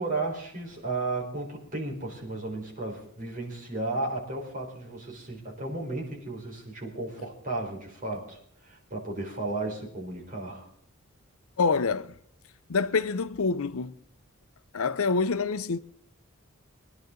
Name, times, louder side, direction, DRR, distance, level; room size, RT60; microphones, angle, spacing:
voice 1, 0.0-10.7, right 2 dB, 40° right, 4.3 m, -34 dB
voice 2, 11.6-12.1 12.7-13.9 14.7-15.8, left 4 dB, 80° left, 0.7 m, -26 dB
23.0 x 10.5 x 3.8 m
head